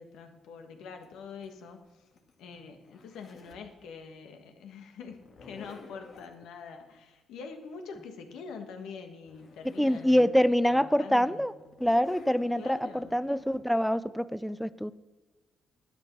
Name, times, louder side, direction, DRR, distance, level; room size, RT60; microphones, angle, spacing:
voice 1, 0.0-2.1 2.4-10.4 10.7-11.5 12.5-13.2, left 5 dB, 85° left, 5 dB, 1.5 m, -45 dB
Zipper (clothing), 1.0-3.7 5.1-6.3 8.9-9.0 9.2-10.3 10.7-10.8 11.6-13.6, left 4 dB, 55° left, 1.8 m, -51 dB
voice 2, 9.6-11.5 11.8-14.9, equal, ahead, 15 dB, 0.4 m, -25 dB
11.5 x 8.4 x 6.1 m, 1.2 s
cardioid pair, 90°, 0 cm